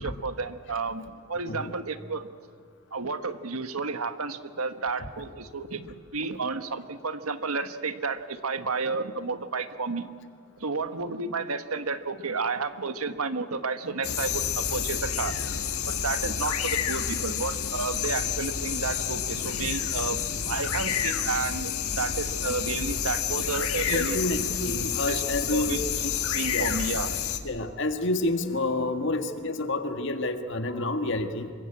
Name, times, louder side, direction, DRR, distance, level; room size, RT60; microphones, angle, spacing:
voice 1, 0.0-2.3 2.9-10.1 10.6-15.4 15.9-24.2 25.1-25.9 26.3-27.2, right 4 dB, 85° right, 10 dB, 1.4 m, -31 dB
voice 2, 1.5-1.8 23.9-25.8 26.3-26.8 27.4-31.5, left 2 dB, 55° left, 7 dB, 1.8 m, -29 dB
sound 1, 14.0-27.4, left 8 dB, 85° left, 1.7 m, -29 dB
26.0 x 23.0 x 8.7 m, 2.2 s
head